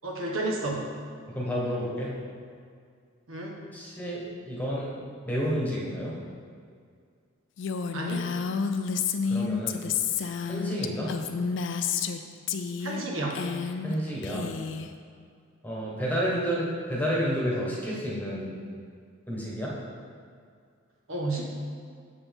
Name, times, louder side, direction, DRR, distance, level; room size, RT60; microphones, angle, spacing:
voice 1, 0.0-0.8 3.3-3.6 7.9-8.3 12.8-13.4 21.1-21.4, right 2 dB, 80° right, -1 dB, 1.2 m, -31 dB
voice 2, 1.3-2.1 3.7-4.9 5.2-6.1 9.3-9.9 10.4-11.1 13.8-14.5 15.6-18.6 19.3-19.7, equal, 10° left, -5 dB, 1.2 m, -30 dB
Female speech woman speaking, 7.6-12.2 12.5-13.0 13.3-13.9 14.2-14.9, left 6 dB, 60° left, 0.4 m, -30 dB
7.0 x 6.9 x 3.5 m, 2.2 s
head